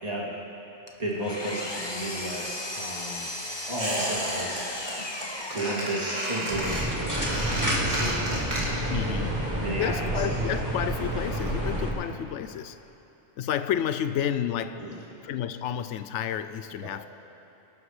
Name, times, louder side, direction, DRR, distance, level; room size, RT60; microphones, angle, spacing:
voice 1, 0.0-0.3 1.0-3.3 3.7-4.6 5.5-6.9 7.5-8.3 9.0-10.1 14.8-15.0, right 1 dB, 35° right, -5 dB, 2.6 m, -33 dB
Engine, 0.9-6.6, left 1 dB, 25° left, 1.0 m, -36 dB
Squeak, 3.8-4.6 4.9-5.2 5.6-9.0 9.2-9.3, right 1 dB, 70° right, 3.0 m, -31 dB
sound 1, 6.5-11.9, right 1 dB, 15° right, 1.9 m, -29 dB
voice 2, 8.9-9.4 9.8-12.8 13.4-14.9 15.2-17.1, left 9 dB, 90° left, 11 dB, 0.9 m, -30 dB
24.0 x 12.0 x 3.2 m, 3.0 s
omnidirectional pair, 1.2 m